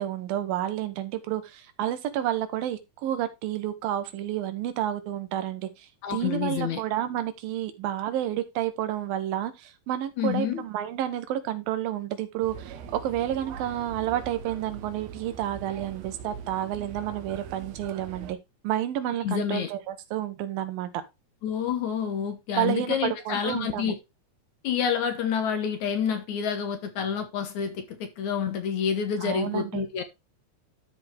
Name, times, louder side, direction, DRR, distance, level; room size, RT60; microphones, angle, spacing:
voice 1, 0.0-18.4 18.6-20.9 22.6-23.9 29.2-29.8, right 12 dB, 90° right, 2.9 m, -30 dB
voice 2, 6.0-6.8 10.2-10.6 19.2-19.7 21.4-24.0 24.6-30.0, left 7 dB, 65° left, 2.2 m, -28 dB
sound 1, 12.4-18.3, right 8 dB, 70° right, 1.7 m, -42 dB
12.5 x 4.9 x 3.4 m
omnidirectional pair, 4.0 m